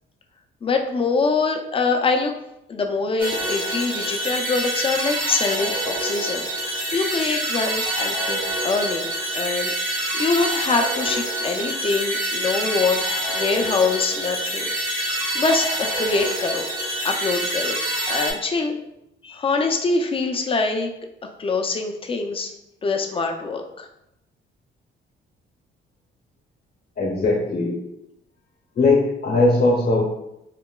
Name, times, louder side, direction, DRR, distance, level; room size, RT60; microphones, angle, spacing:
voice 1, 0.6-2.3 2.7-9.7 10.1-14.7 15.0-16.6 17.0-17.8 18.1-18.8 19.2-20.9 21.4-22.5 22.8-23.9, left 4 dB, 30° left, 4 dB, 0.4 m, -24 dB
sound 1, 3.2-18.3, right 1 dB, 70° right, 1.5 m, -26 dB
voice 2, 27.0-27.8 28.7-30.1, left 2 dB, 50° left, 0 dB, 0.8 m, -19 dB
3.8 x 2.1 x 2.2 m, 0.85 s
cardioid pair, 90°, 20 cm